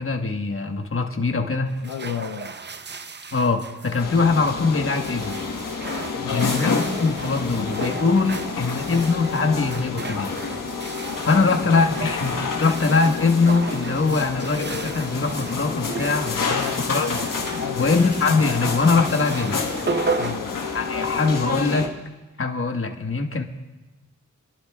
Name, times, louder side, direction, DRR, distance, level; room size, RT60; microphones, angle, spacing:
voice 1, 0.0-1.7 3.3-5.4 6.3-10.3 11.3-17.3 17.8-19.6 20.7-21.9 22.4-23.4, left 4 dB, 40° left, 1.3 m, -22 dB
working with water, 1.7-21.3, right 4 dB, 35° right, 0.6 m, -35 dB
voice 2, 1.8-2.6 6.2-6.8 11.5-11.7 16.5-16.9 17.6-17.9 20.2-20.6, left 10 dB, 70° left, 0.5 m, -33 dB
sound 1, 3.4-11.8 12.1-19.0, left 2 dB, 25° left, 1.5 m, -44 dB
sound 2, 4.0-21.9, left 5 dB, 85° left, 1.3 m, -29 dB
28.0 x 11.5 x 2.3 m
cardioid pair, 60°, 32 cm